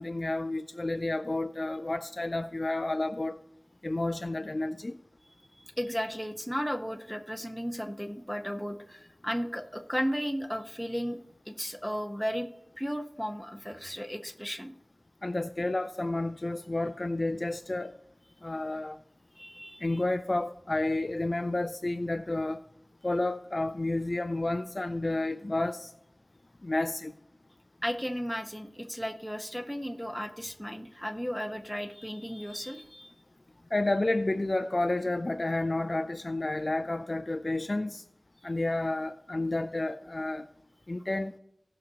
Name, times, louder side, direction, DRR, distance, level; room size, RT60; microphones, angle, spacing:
voice 1, 0.0-3.4 3.8-5.0 15.2-17.9 18.4-19.0 19.8-22.6 23.0-25.9 26.6-27.1 33.7-38.0 38.4-40.5 40.9-41.3, left 2 dB, 45° left, 0.4 m, -30 dB
voice 2, 5.5-11.2 11.5-12.5 12.8-14.7 19.4-20.0 27.8-33.1, equal, 5° left, 1.1 m, -35 dB
17.5 x 6.3 x 2.9 m
wide cardioid pair, 50°, 0 cm